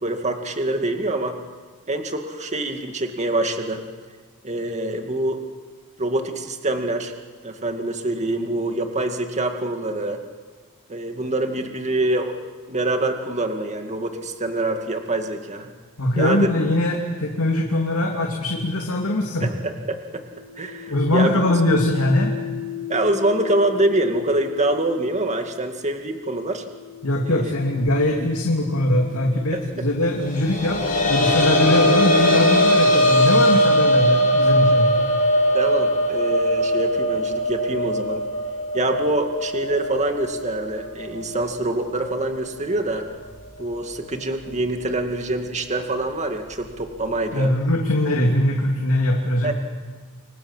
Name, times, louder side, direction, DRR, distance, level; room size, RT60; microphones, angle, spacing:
voice 1, 0.0-1.4 1.9-3.8 4.4-5.4 6.0-7.1 7.4-10.2 10.9-12.3 12.7-15.7 16.2-16.5 19.4-20.2 20.6-21.4 22.9-26.6 27.2-27.5 29.5-29.6 35.5-38.2 38.7-43.0 43.6-47.5 49.4-49.5, right 2 dB, 30° right, 5 dB, 2.2 m, -25 dB
voice 2, 16.0-19.5 20.9-22.3 27.0-34.9 47.3-49.5, left 1 dB, 70° left, 0 dB, 2.9 m, -21 dB
sound 1, 20.3-30.7 31.6-35.3, left 12 dB, 60° right, 2.7 m, -38 dB
sound 2, 30.3-41.7 42.1-42.2 43.7-43.8, equal, 40° left, 5.0 m, -20 dB
29.5 x 23.5 x 7.5 m, 1.5 s
head